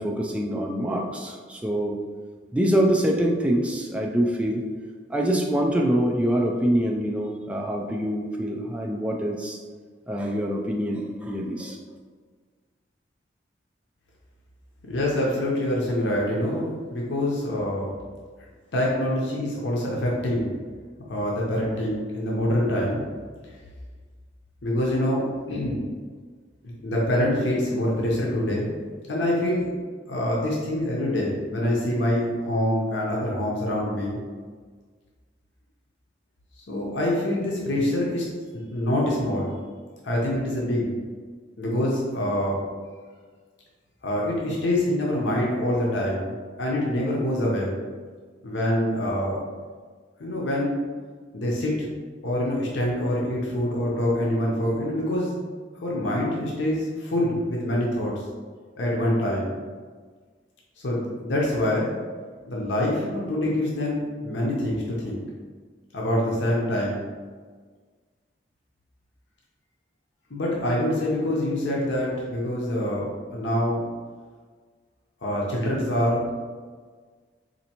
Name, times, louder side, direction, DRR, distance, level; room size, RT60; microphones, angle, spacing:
voice 1, 0.0-2.0 2.5-4.6 5.1-9.6 10.1-11.8, right 1 dB, 5° right, -1 dB, 0.3 m, -25 dB
voice 2, 14.9-17.9 18.7-20.5 21.1-23.1 24.6-25.9 26.6-28.7 29.1-29.7 30.1-34.2 36.7-38.2 38.5-39.5 40.0-40.9 41.6-42.6 44.0-47.8 48.4-49.4 50.2-50.7 51.3-51.9 52.2-55.4 55.8-58.2 58.8-59.5 60.8-61.9 62.5-65.2 65.9-67.0 70.3-73.8 75.2-76.3, left 1 dB, 85° left, -3 dB, 0.7 m, -25 dB
4.2 x 2.6 x 2.9 m, 1.5 s
head